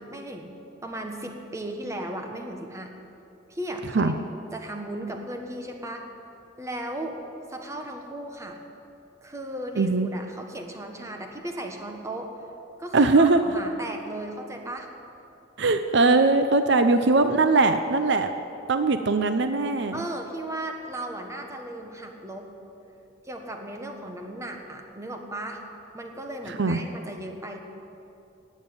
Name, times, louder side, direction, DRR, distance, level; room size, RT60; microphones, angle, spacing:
voice 1, 0.0-2.9 3.5-4.1 4.5-6.0 6.6-7.2 7.5-8.6 9.2-12.3 12.8-14.9 16.7-16.8 19.9-22.5 23.2-25.6 25.9-27.6, right 1 dB, 15° right, 3 dB, 1.5 m, -36 dB
voice 2, 9.8-10.1 12.9-13.4 15.6-18.3 18.7-20.0 26.5-26.8, right 3 dB, 65° right, 9 dB, 0.7 m, -20 dB
18.5 x 7.5 x 8.9 m, 2.8 s
head